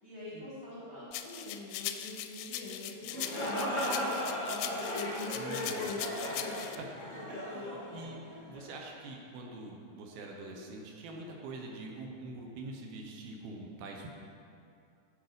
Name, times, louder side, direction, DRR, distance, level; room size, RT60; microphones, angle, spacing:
voice 1, 0.0-4.5 4.9-6.0, left 2 dB, 50° left, -8 dB, 1.2 m, -45 dB
sound 1, 1.1-6.8, left 11 dB, 85° left, 2.6 m, -40 dB
sound 2, 2.9-8.6, equal, 30° left, 0.8 m, -36 dB
voice 2, 5.3-5.9 6.8-6.9 7.5-14.1, right 2 dB, 75° right, 0 dB, 2.8 m, -45 dB
8.8 x 8.1 x 5.1 m, 2.6 s
omnidirectional pair, 4.6 m